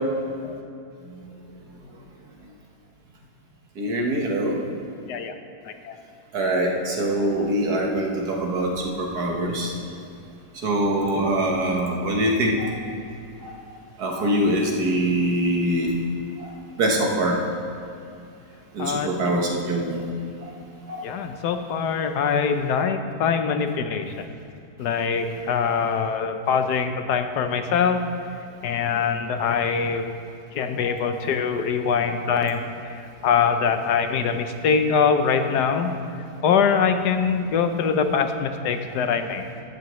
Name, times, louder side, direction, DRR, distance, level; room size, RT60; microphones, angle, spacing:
voice 1, 3.8-4.6 6.3-9.7 10.6-12.7 13.4-13.5 14.0-15.9 16.4-16.5 16.8-17.4 18.8-20.1 20.9-21.0 30.8-31.0 32.1-32.2, right 1 dB, 75° right, 0 dB, 1.9 m, -23 dB
voice 2, 18.8-19.4 21.0-24.1 24.8-28.0 28.6-30.1 30.5-32.7 33.2-35.9 36.4-39.4, left 6 dB, 85° left, 7 dB, 1.4 m, -23 dB
14.5 x 11.5 x 3.1 m, 2.5 s
omnidirectional pair, 1.7 m